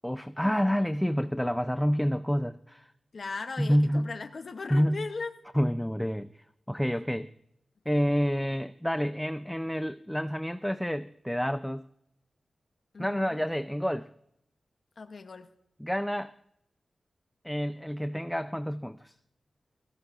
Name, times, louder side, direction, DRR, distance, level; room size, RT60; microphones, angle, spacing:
voice 1, 0.0-2.9 3.6-4.2 4.7-5.1 5.5-7.3 7.9-11.8 13.0-14.1 15.8-16.3 17.4-19.1, equal, 5° left, 11 dB, 0.4 m, -28 dB
voice 2, 3.1-5.3 12.9-13.4 15.0-15.5, left 4 dB, 60° left, 6 dB, 0.7 m, -38 dB
18.5 x 16.0 x 2.4 m, 0.78 s
wide cardioid pair, 90°, 0 cm